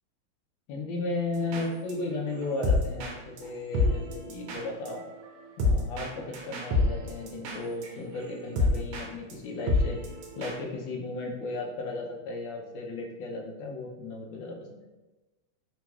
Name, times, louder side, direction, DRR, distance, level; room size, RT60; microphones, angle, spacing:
voice 1, 0.7-5.0 5.6-10.0 10.4-14.8, left 2 dB, 70° left, 0 dB, 1.2 m, -35 dB
sound 1, 1.3-1.9 2.3-9.0 9.3-9.4 9.6-10.5, left 2 dB, 85° right, 1.5 m, -29 dB
3.8 x 2.9 x 2.3 m, 1.1 s
omnidirectional pair, 2.3 m